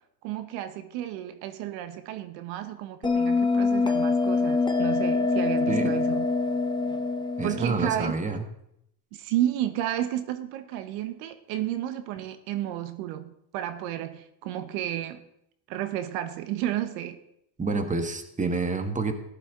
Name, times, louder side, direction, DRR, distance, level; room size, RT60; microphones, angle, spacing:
voice 1, 0.2-6.3 7.4-8.2 9.1-15.2 15.7-17.2, right 12 dB, 70° right, 1.1 m, -32 dB
Bell, 3.0-8.1, left 3 dB, 10° left, 1.2 m, -25 dB
voice 2, 7.4-8.4 17.6-19.1, right 3 dB, 15° right, 1.6 m, -28 dB
14.0 x 11.5 x 3.8 m
supercardioid pair, 100°, 47 cm